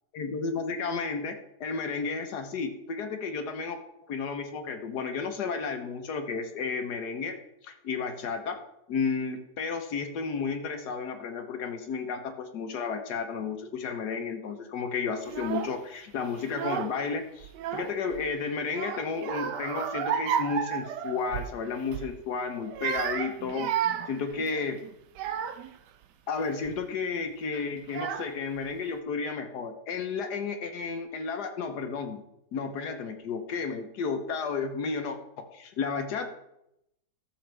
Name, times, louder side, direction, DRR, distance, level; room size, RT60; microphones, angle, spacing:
voice 1, 0.1-3.8 4.1-7.4 7.6-8.6 8.9-24.8 26.3-32.2 32.5-36.3, left 5 dB, 70° left, 6 dB, 1.4 m, -32 dB
Child speech kid speaking / Crying sobbing, 15.2-15.8 16.4-17.1 17.4-18.2 18.7-21.5 21.9-22.1 22.6-25.8 26.4-26.8 27.5-27.6 27.9-28.6, right 9 dB, 80° right, 1.2 m, -32 dB
14.5 x 7.1 x 3.3 m, 0.83 s
omnidirectional pair, 1.9 m